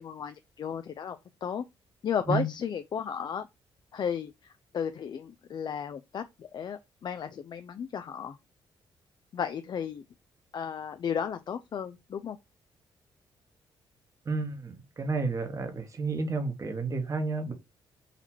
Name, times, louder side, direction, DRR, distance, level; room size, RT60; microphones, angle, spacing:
voice 1, 0.0-1.6 2.0-3.5 3.9-8.4 9.3-10.0 10.5-12.4, left 8 dB, 50° left, 0.4 m, -34 dB
voice 2, 14.3-17.5, right 4 dB, 35° right, 1.2 m, -31 dB
4.1 x 2.8 x 4.3 m
cardioid pair, 85°, 9 cm